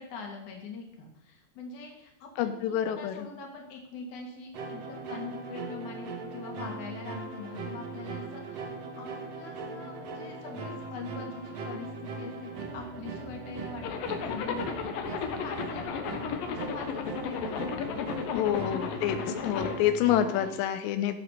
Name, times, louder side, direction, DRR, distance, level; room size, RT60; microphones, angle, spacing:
voice 1, 0.0-18.3 20.3-20.6, left 4 dB, 45° left, 1 dB, 3.2 m, -43 dB
voice 2, 2.4-3.3 18.3-21.2, left 10 dB, 90° left, 9 dB, 2.5 m, -28 dB
sound 1, 4.5-20.5, right 3 dB, 70° right, 1.5 m, -39 dB
Zipper (clothing), 13.8-19.8, left 7 dB, 75° left, 2.1 m, -34 dB
16.5 x 8.2 x 6.6 m, 0.80 s
omnidirectional pair, 5.9 m